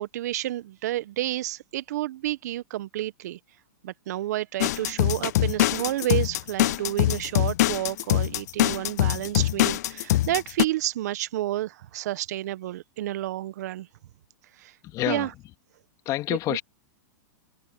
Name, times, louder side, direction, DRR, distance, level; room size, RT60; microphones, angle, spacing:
voice 1, 0.0-3.4 3.8-13.9 14.6-14.7 15.1-15.3 16.5-16.6, right 14 dB, 65° right, 1.5 m, -30 dB
sound 1, 4.6-10.6, left 15 dB, 65° left, 0.4 m, -23 dB
voice 2, 14.8-15.3 16.1-16.6, left 16 dB, 35° left, 2.4 m, -27 dB
hypercardioid pair, 120°, 10 cm